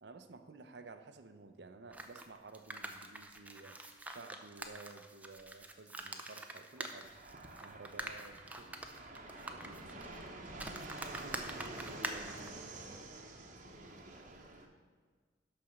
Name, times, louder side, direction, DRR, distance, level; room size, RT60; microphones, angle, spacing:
voice 1, 0.0-3.8 4.1-7.1 7.6-8.8, right 3 dB, 65° right, 8 dB, 0.7 m, -53 dB
sound 1, 1.9-12.5, right 1 dB, 10° right, 0.6 m, -45 dB
Fixed-wing aircraft airplane, 7.0-14.7, right 2 dB, 45° right, 1.0 m, -48 dB
voice 2, 9.6-10.7 12.0-14.2, left 1 dB, 45° left, 3 dB, 1.3 m, -61 dB
11.5 x 4.2 x 6.4 m, 1.5 s
head